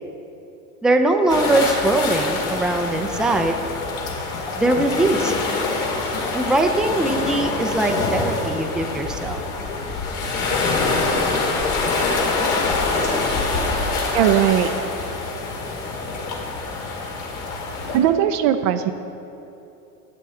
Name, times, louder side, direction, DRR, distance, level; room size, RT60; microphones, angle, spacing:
voice 1, 0.8-3.6 4.5-5.3 6.3-9.4, right 2 dB, ahead, 4 dB, 0.5 m, -21 dB
sound 1, 1.3-18.0, left 3 dB, 65° left, 2.3 m, -25 dB
voice 2, 14.1-14.7 17.9-18.9, right 11 dB, 60° right, 7 dB, 0.6 m, -18 dB
11.5 x 8.8 x 3.7 m, 2.9 s
hypercardioid pair, 100°, 46 cm